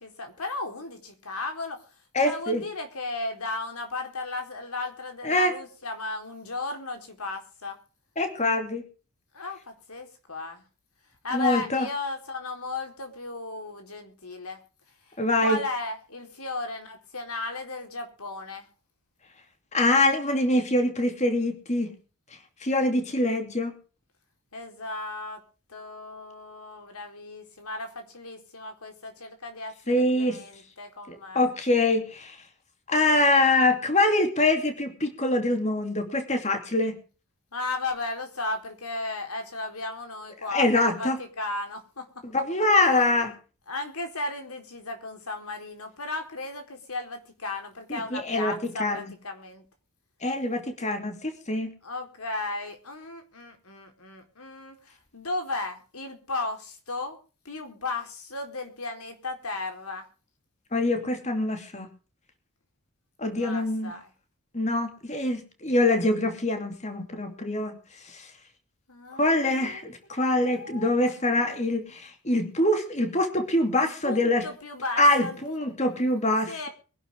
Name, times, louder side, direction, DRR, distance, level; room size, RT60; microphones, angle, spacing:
voice 1, 0.0-1.8 2.2-7.8 9.3-10.6 11.2-14.6 15.1-18.7 24.5-25.4 25.7-31.4 37.5-42.2 43.0-43.2 43.7-49.6 51.8-57.2 57.4-60.1 63.4-64.1 68.9-71.5 73.7-75.7 76.5-76.7, left 2 dB, 85° left, 5 dB, 4.2 m, -35 dB
voice 2, 2.1-2.6 5.2-5.5 8.2-8.8 11.3-11.9 15.2-15.6 19.7-21.9 22.6-23.7 29.9-30.4 31.1-32.4 32.9-37.0 40.5-41.2 42.3-43.3 47.9-49.0 50.2-51.7 60.7-61.9 63.2-63.9 64.5-67.8 68.1-68.2 69.2-74.5 75.0-76.7, left 2 dB, 30° left, 6 dB, 2.7 m, -24 dB
23.0 x 11.5 x 3.7 m, 0.36 s
head